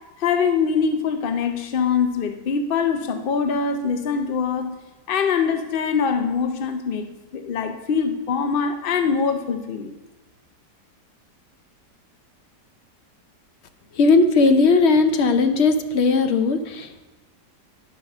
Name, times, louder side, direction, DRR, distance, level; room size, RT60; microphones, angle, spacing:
voice 1, 0.2-4.7 5.1-7.1 7.3-9.9, left 6 dB, 85° left, 8 dB, 0.4 m, -23 dB
voice 2, 14.0-17.0, left 3 dB, 55° left, 7 dB, 0.8 m, -18 dB
11.5 x 5.5 x 5.9 m, 1.1 s
omnidirectional pair, 1.8 m